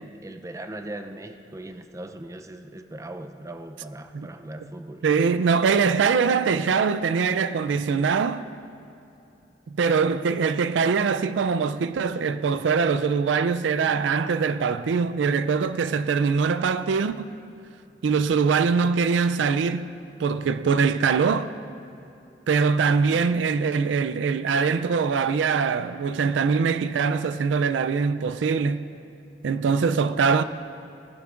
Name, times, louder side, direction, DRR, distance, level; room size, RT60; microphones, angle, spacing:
voice 1, 0.0-5.0, right 1 dB, 15° right, 0.5 m, -39 dB
voice 2, 5.0-8.4 9.7-17.3 18.0-19.9 20.2-21.5 22.5-28.9 29.4-30.4, right 5 dB, 85° right, 0.4 m, -23 dB
19.0 x 11.5 x 2.5 m
head